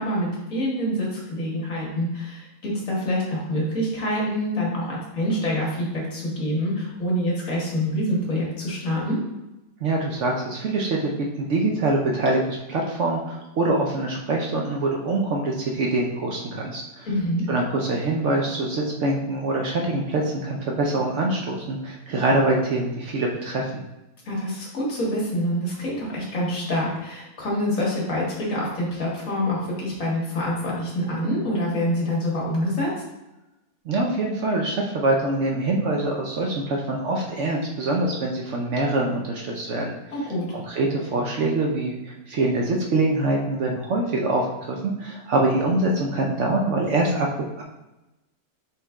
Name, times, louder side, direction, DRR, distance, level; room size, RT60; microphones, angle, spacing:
voice 1, 0.0-9.2 17.0-17.4 24.3-32.9 40.1-40.5, equal, 65° left, -5 dB, 1.8 m, -26 dB
voice 2, 9.8-17.1 17.5-23.7 33.9-39.9 40.5-47.6, right 2 dB, 60° right, 0 dB, 0.9 m, -24 dB
4.4 x 3.3 x 3.5 m, 0.99 s
omnidirectional pair, 1.6 m